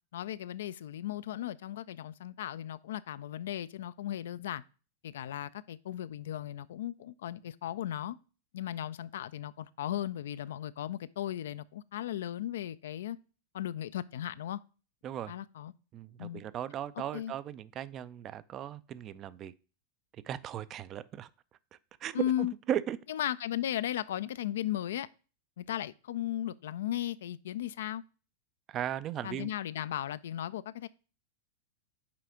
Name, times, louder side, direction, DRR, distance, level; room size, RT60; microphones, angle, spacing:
voice 1, 0.1-4.6 5.0-8.2 8.5-13.2 13.5-14.6 15.3-15.7 16.2-16.4 17.1-17.3 22.1-22.5 23.1-25.1 25.6-28.0 29.2-30.9, left 12 dB, 60° left, 0.3 m, -36 dB
voice 2, 15.9-19.5 20.2-21.3 22.0-23.0 28.7-29.5, right 10 dB, 30° right, 0.4 m, -37 dB
5.8 x 4.8 x 4.9 m
figure-of-eight pair, 90°, 0 cm